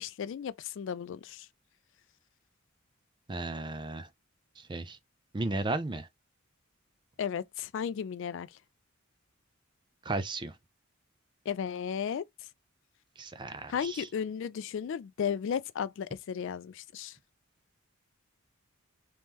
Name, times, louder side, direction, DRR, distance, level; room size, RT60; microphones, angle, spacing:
voice 1, 0.0-1.5 7.2-8.6 11.5-12.3 13.7-17.2, left 7 dB, 60° left, 0.3 m, -34 dB
voice 2, 3.3-4.1 4.6-5.0 5.3-6.1 10.0-10.6 13.2-14.1, right 2 dB, 20° right, 0.4 m, -35 dB
3.6 x 3.1 x 2.8 m
head